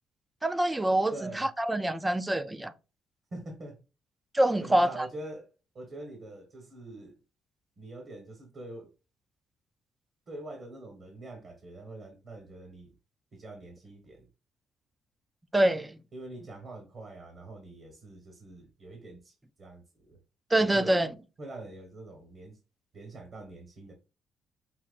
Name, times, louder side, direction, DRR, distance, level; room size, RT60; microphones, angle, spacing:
voice 1, 0.4-2.7 4.3-5.1 15.5-16.0 20.5-21.1, right 1 dB, 15° right, 0.5 m, -25 dB
voice 2, 1.1-1.5 3.3-3.8 4.6-5.5 5.7-7.2 7.8-8.9 10.3-12.9 13.3-14.3 16.1-20.2 20.6-21.0 21.4-22.6 22.9-23.9, right 2 dB, 50° right, 1.5 m, -44 dB
5.7 x 3.0 x 2.5 m
cardioid pair, 90°, 0 cm